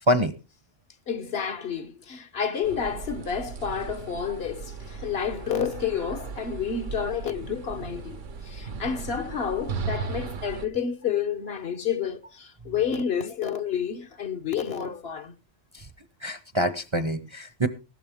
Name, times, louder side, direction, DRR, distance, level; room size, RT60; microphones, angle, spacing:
voice 1, 1.1-8.2 8.4-15.3, left 7 dB, 60° left, 1.2 m, -30 dB
sound 1, 2.6-10.7, right 5 dB, 80° right, 1.4 m, -37 dB
voice 2, 16.2-17.7, equal, 30° right, 0.7 m, -25 dB
15.0 x 12.5 x 3.6 m
omnidirectional pair, 1.2 m